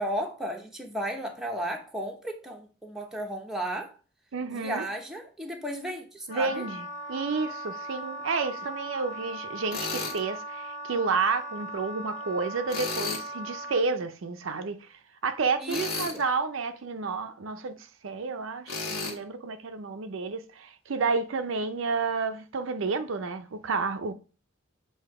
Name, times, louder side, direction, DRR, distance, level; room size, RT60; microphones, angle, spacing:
voice 1, 0.0-3.9 4.5-6.6 15.6-16.2, right 1 dB, ahead, 0.8 m, -34 dB
voice 2, 4.3-4.9 6.3-24.1, right 4 dB, 65° right, 0.5 m, -30 dB
Wind instrument woodwind instrument, 6.3-13.9, right 1 dB, 35° left, 0.7 m, -39 dB
Tools, 9.7-10.2 12.7-13.3 15.7-16.2 18.7-19.2, left 3 dB, 80° left, 1.5 m, -33 dB
7.6 x 2.7 x 4.7 m
head